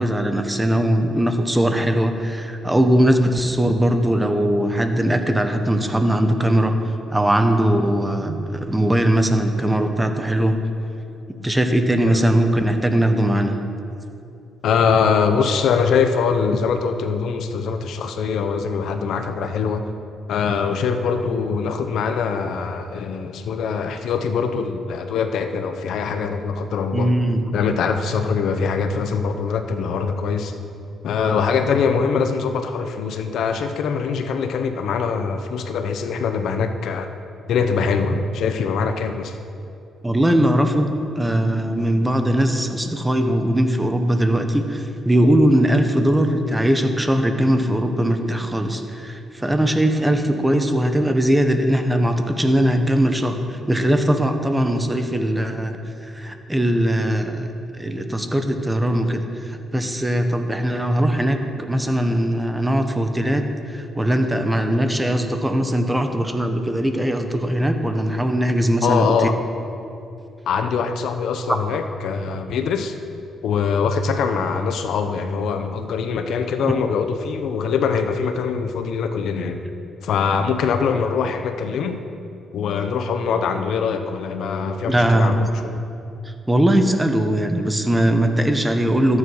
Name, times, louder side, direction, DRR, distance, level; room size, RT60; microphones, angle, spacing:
voice 1, 0.0-6.7 7.1-10.6 11.3-13.6 26.9-27.5 40.0-69.3 71.5-71.6 76.6-76.8 84.9-85.5 86.2-89.2, right 1 dB, 10° right, 6 dB, 1.1 m, -20 dB
voice 2, 14.6-19.9 20.3-27.1 27.5-30.5 31.0-37.1 37.5-39.4 68.8-69.4 70.5-72.9 73.4-79.6 80.0-82.0 82.5-85.8, left 5 dB, 75° left, 7 dB, 0.8 m, -23 dB
13.5 x 9.7 x 4.7 m, 2.7 s
cardioid pair, 90°, 0 cm